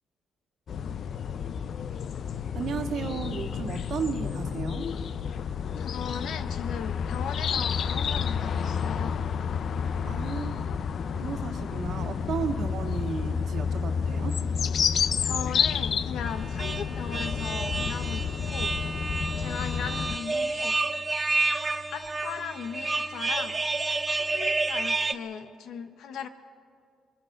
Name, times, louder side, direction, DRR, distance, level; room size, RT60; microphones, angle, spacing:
sound 1, 0.7-20.2, left 6 dB, 60° left, 0.6 m, -30 dB
voice 1, 2.5-4.9 10.0-10.7 11.1-14.4, right 5 dB, 65° right, 5 dB, 1.7 m, -34 dB
voice 2, 5.8-9.2 15.2-20.8 21.9-23.6 24.1-26.3, left 7 dB, 75° left, 9 dB, 1.3 m, -38 dB
sound 2, 16.3-25.1, right 3 dB, 25° right, 0.9 m, -30 dB
22.5 x 20.5 x 6.6 m, 2.1 s
cardioid pair, 90°, 0 cm